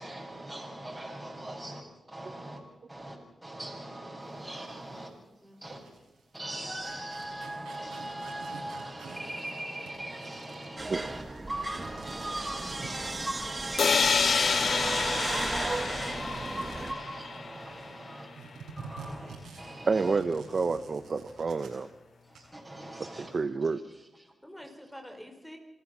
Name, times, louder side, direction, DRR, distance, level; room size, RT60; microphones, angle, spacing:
voice 1, 0.0-1.8 2.1-2.6 2.9-5.1 5.6-5.8 6.3-20.2 22.3-23.3 24.2-24.3, right 1 dB, 15° right, -2 dB, 7.2 m, -40 dB
voice 2, 4.8-5.7 24.4-25.6, equal, 5° left, 5 dB, 4.4 m, -48 dB
sound 1, 5.0-5.1 5.7-17.9 18.3-21.9 22.2-22.4, right 4 dB, 90° right, 6.4 m, -49 dB
sound 2, 10.8-16.9, right 2 dB, 30° right, 2.0 m, -35 dB
sound 3, 13.8-17.6, left 5 dB, 65° left, 0.7 m, -28 dB
voice 3, 19.9-21.9 23.2-23.8, right 4 dB, 50° right, 11 dB, 1.0 m, -29 dB
27.0 x 14.5 x 7.4 m, 1.0 s
cardioid pair, 50°, 0 cm